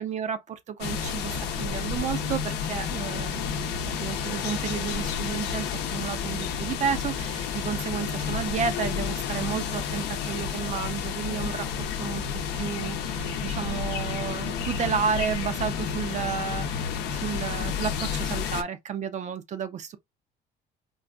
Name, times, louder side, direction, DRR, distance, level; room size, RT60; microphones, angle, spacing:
voice 1, 0.0-12.2 12.5-20.0, right 7 dB, 45° right, 0.5 m, -32 dB
sound 1, 0.8-18.6, left 7 dB, 85° left, 0.7 m, -30 dB
3.9 x 2.4 x 2.2 m
cardioid pair, 110°, 17 cm